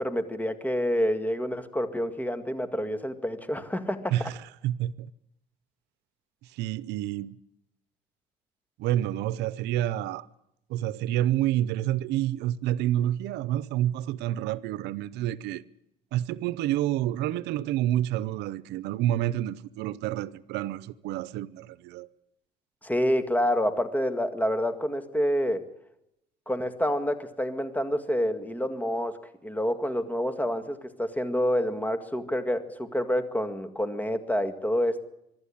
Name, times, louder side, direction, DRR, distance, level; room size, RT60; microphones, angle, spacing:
voice 1, 0.0-4.3 22.8-25.7 26.5-29.2 29.4-35.0, equal, 10° left, 1.9 m, -28 dB
voice 2, 4.6-5.1 6.5-7.4 8.8-10.3 10.7-15.6 16.1-22.1, right 13 dB, 85° right, 0.7 m, -28 dB
23.5 x 12.0 x 9.9 m
cardioid pair, 110°, 17 cm